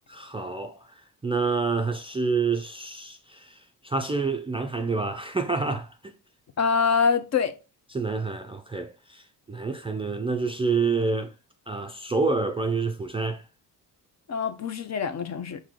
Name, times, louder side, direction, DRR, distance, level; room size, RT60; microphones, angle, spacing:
voice 1, 0.1-0.8 1.2-6.1 7.9-9.2 9.5-11.3 11.7-13.4, right 4 dB, 15° right, 0.3 m, -28 dB
voice 2, 6.6-7.5 14.3-15.6, left 6 dB, 45° left, 0.6 m, -24 dB
4.7 x 2.7 x 3.7 m
cardioid pair, 95°, 38 cm